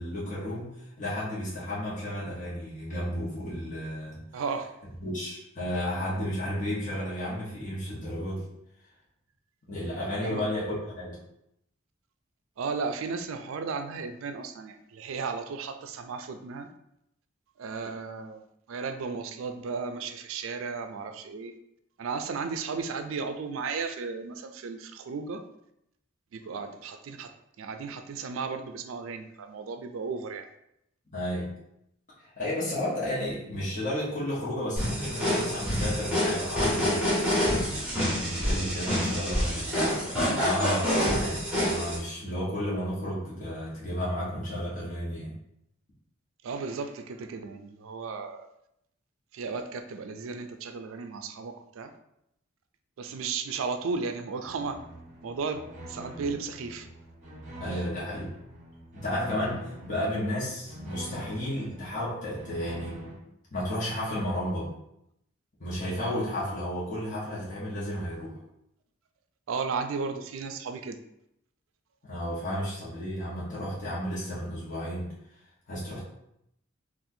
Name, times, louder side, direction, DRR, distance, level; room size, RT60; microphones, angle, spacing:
voice 1, 0.0-4.4 5.0-8.5 9.7-11.2 31.1-31.5 32.4-37.6 38.2-40.0 40.3-45.3 57.5-58.3 58.9-63.0 63.5-64.7 65.6-68.4 72.0-75.1 75.7-76.0, left 1 dB, 40° left, -8 dB, 1.0 m, -33 dB
voice 2, 4.3-4.7 10.2-10.5 12.6-16.7 17.6-21.5 22.0-25.4 26.3-30.5 46.4-48.5 49.3-51.9 53.0-54.8 55.2-55.6 55.9-56.9 57.7-57.8 69.5-71.0, right 4 dB, 75° right, 8 dB, 0.4 m, -34 dB
sound 1, 34.8-42.0, equal, 5° right, 1.2 m, -27 dB
sound 2, 54.4-63.2, equal, 40° right, 0.9 m, -44 dB
4.1 x 2.4 x 2.6 m, 0.79 s
head